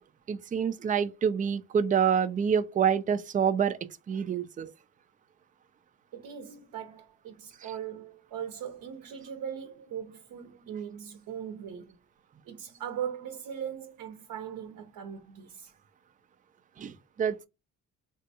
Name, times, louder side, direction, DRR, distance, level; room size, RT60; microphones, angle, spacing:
voice 1, 0.3-3.8 4.1-4.7 16.8-17.5, right 7 dB, 25° right, 0.3 m, -27 dB
voice 2, 6.1-12.0 12.4-15.7, right 8 dB, 55° right, 0.6 m, -39 dB
3.6 x 2.2 x 2.7 m
cardioid pair, 90°, 38 cm